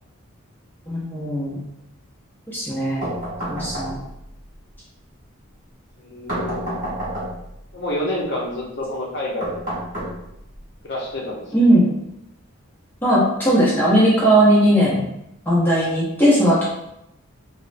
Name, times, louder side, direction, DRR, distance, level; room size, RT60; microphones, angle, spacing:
voice 1, 0.9-1.6 2.5-3.0 3.5-4.0 11.5-11.9 13.0-15.0 15.5-16.6, right 1 dB, 10° left, -7 dB, 0.6 m, -17 dB
sound 1, 3.0-4.3 6.3-7.6 9.4-10.6, right 1 dB, 40° right, 1.0 m, -29 dB
voice 2, 6.0-6.8 7.7-9.6 10.8-11.5, left 1 dB, 50° left, -2 dB, 0.6 m, -28 dB
3.0 x 2.1 x 2.5 m, 0.83 s
head